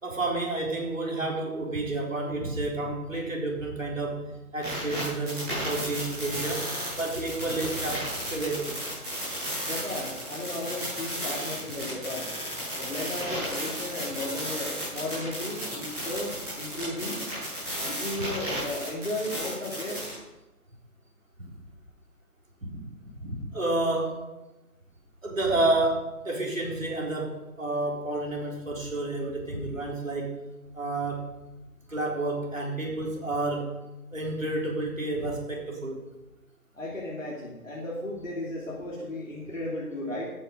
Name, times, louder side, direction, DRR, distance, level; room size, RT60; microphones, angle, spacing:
voice 1, 0.0-8.8 22.6-22.7 23.0-24.2 25.2-30.3 30.7-31.2 31.9-33.8 34.1-36.0, right 2 dB, 55° right, -1 dB, 4.1 m, -30 dB
sound 1, 4.6-20.2, equal, 10° right, 4.1 m, -34 dB
voice 2, 9.6-12.3 12.7-17.2 17.8-20.0 36.7-40.3, left 1 dB, 55° left, -6 dB, 3.2 m, -35 dB
14.0 x 8.8 x 5.3 m, 1.0 s
figure-of-eight pair, 160°, 46 cm